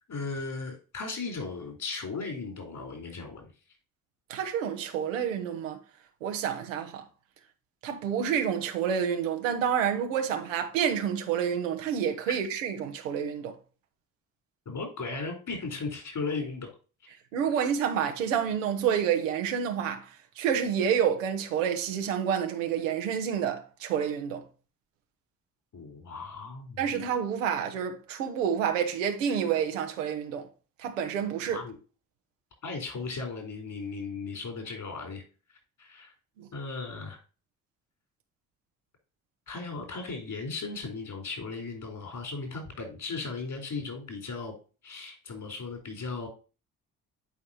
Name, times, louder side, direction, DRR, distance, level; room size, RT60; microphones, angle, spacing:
voice 1, 0.1-3.5 14.7-16.7 17.1-17.2 25.7-26.8 31.5-31.7 32.6-35.2 35.8-36.1 36.5-37.2 39.5-44.5 44.8-46.3, left 4 dB, 55° left, 4.3 m, -36 dB
voice 2, 4.3-5.8 6.2-7.0 7.8-13.5 17.3-20.1 20.4-24.4 26.8-30.5 30.8-31.6 36.4-36.5, right 8 dB, 90° right, 1.1 m, -28 dB
10.5 x 4.8 x 2.9 m
hypercardioid pair, 50°, 38 cm